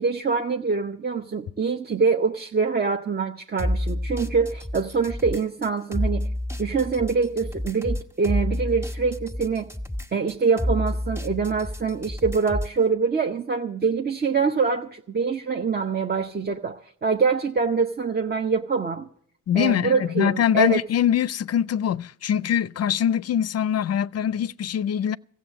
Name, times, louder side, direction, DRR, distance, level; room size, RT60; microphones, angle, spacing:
voice 1, 0.0-6.3 6.6-9.7 10.1-19.1 19.5-20.8, right 5 dB, 30° right, 0.8 m, -24 dB
sound 1, 3.6-12.8, left 1 dB, 10° right, 1.6 m, -29 dB
voice 2, 19.5-25.2, left 9 dB, 55° left, 0.5 m, -23 dB
15.0 x 7.3 x 9.4 m
cardioid pair, 70°, 31 cm